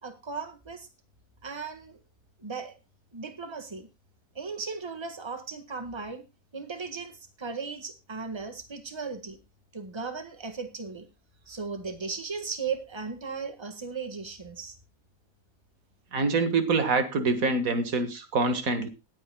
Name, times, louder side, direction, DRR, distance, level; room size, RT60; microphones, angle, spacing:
voice 1, 0.0-0.9 1.4-2.0 2.4-2.7 3.1-3.9 4.3-6.2 6.5-9.4 9.7-11.1 11.5-14.7, right 5 dB, 15° right, 8 dB, 1.6 m, -36 dB
voice 2, 16.1-18.9, right 3 dB, 55° right, 9 dB, 2.0 m, -25 dB
19.5 x 9.0 x 2.2 m, 0.25 s
omnidirectional pair, 1.8 m